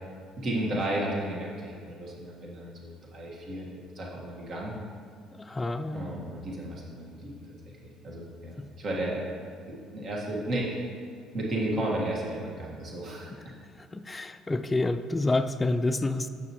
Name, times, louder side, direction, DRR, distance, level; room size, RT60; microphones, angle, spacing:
voice 1, 0.4-4.7 5.9-7.4 7.8-9.2 9.6-10.8 11.3-13.3, right 1 dB, 55° right, -3 dB, 1.6 m, -33 dB
voice 2, 5.3-6.1 8.6-8.7 13.8-16.3, left 2 dB, 20° left, 10 dB, 0.3 m, -28 dB
6.9 x 6.2 x 3.0 m, 2.2 s
supercardioid pair, 80°, 0 cm